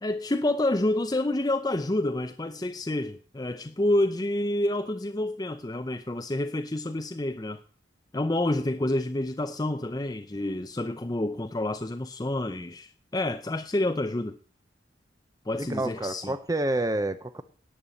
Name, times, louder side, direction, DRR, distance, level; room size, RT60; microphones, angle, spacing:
voice 1, 0.0-7.6 8.1-14.4 15.5-16.3, left 1 dB, 20° left, 0.6 m, -28 dB
voice 2, 15.5-17.4, right 1 dB, 20° right, 0.6 m, -28 dB
11.0 x 8.7 x 7.7 m
head